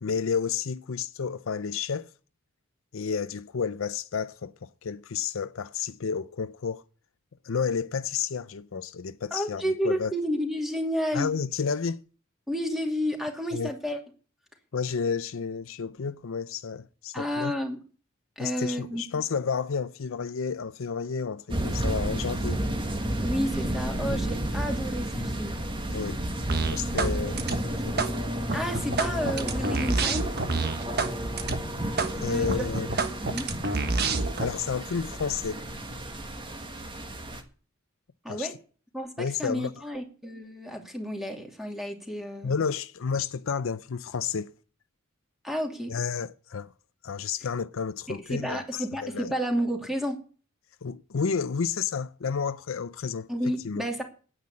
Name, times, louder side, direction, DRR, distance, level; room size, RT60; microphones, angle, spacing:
voice 1, 0.0-2.1 2.9-6.8 7.4-10.1 11.1-12.0 13.5-13.7 14.7-17.5 18.4-22.6 25.9-26.2 26.7-27.5 27.9-28.1 32.1-32.9 34.4-35.6 38.3-38.5 39.2-39.7 42.4-44.5 45.9-46.7 47.0-48.6 49.0-49.3 50.8-53.8, left 6 dB, 70° left, 0.5 m, -31 dB
voice 2, 9.3-11.3 12.5-14.0 17.1-17.8 18.4-19.2 23.2-25.6 28.5-30.3 32.2-32.6 33.2-33.5 38.2-38.5 38.9-42.5 45.4-45.9 48.1-50.2 53.3-54.0, equal, ahead, 2.6 m, -31 dB
sound 1, 21.5-37.4, right 1 dB, 25° right, 1.7 m, -32 dB
sound 2, 26.5-27.1 27.4-28.1 28.5-31.1 31.4-31.6 32.0-32.1 32.5-34.5, right 4 dB, 50° right, 1.4 m, -27 dB
9.5 x 9.4 x 8.5 m
head